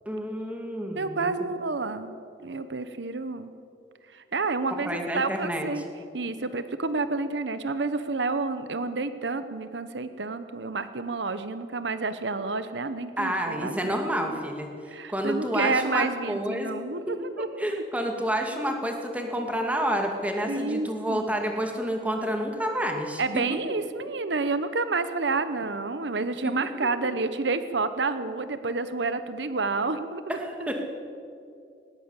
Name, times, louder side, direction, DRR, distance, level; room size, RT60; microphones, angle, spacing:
voice 1, 0.1-1.3 4.8-5.7 13.2-16.7 17.1-23.6 26.4-26.5 27.0-27.1 30.3-30.8, equal, 10° right, 3 dB, 2.2 m, -29 dB
voice 2, 1.0-2.1 2.4-3.5 4.1-5.8 6.1-14.4 14.9-17.8 20.5-21.2 23.2-30.7, right 3 dB, 75° right, 11 dB, 1.0 m, -29 dB
19.0 x 19.0 x 8.2 m, 2.5 s
head